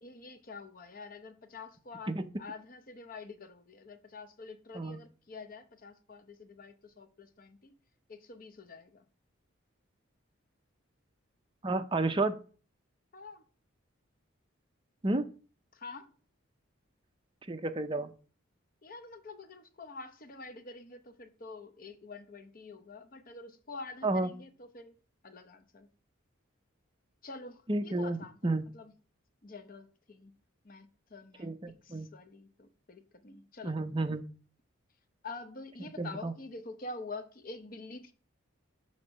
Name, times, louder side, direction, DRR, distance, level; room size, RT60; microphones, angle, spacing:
voice 1, 0.0-7.7 8.1-9.0 13.1-13.4 15.7-16.1 18.8-24.9 25.2-25.9 27.2-28.9 29.4-30.3 30.6-31.5 31.9-33.8 35.2-38.1, left 3 dB, 40° left, 0.8 m, -47 dB
voice 2, 11.6-12.4 15.0-15.3 17.5-18.1 24.0-24.3 27.7-28.2 28.4-28.6 31.4-32.1 33.6-34.2 36.0-36.3, right 2 dB, 25° right, 0.5 m, -31 dB
6.4 x 3.7 x 6.2 m
head